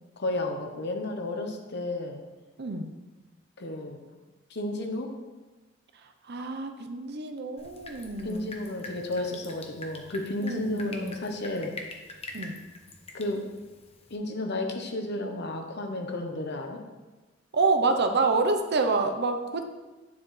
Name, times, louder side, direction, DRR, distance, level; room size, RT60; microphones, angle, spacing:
voice 1, 0.2-2.2 3.6-4.0 4.5-5.1 8.2-11.7 13.1-13.4 14.1-16.8, left 2 dB, 60° left, 4 dB, 1.0 m, -32 dB
voice 2, 2.6-2.9 6.3-8.6 10.4-11.1 12.3-12.6 17.5-19.6, right 3 dB, 60° right, 6 dB, 0.7 m, -27 dB
Drip, 7.6-14.2, left 2 dB, 30° left, 0.9 m, -45 dB
9.4 x 7.1 x 3.2 m, 1.2 s
head